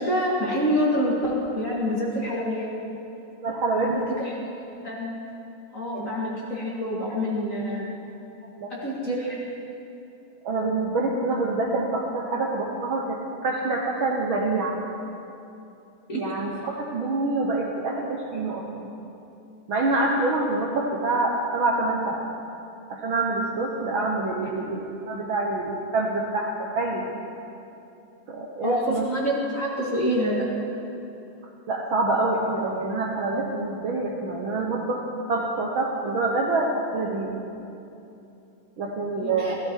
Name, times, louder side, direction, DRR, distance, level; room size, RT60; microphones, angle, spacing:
voice 1, 0.0-2.7 3.8-4.3 4.8-5.1 5.7-7.9 8.7-9.4 16.1-16.2 28.6-30.5 39.2-39.5, equal, 30° left, -5 dB, 2.0 m, -26 dB
voice 2, 3.4-4.1 5.9-6.1 8.6-8.7 10.4-14.8 16.1-18.9 19.7-22.2 22.9-27.1 28.3-29.0 31.7-35.0 35.3-37.3 38.8-39.6, right 2 dB, 60° right, -1 dB, 1.3 m, -26 dB
16.5 x 14.0 x 4.6 m, 2.8 s
omnidirectional pair, 3.6 m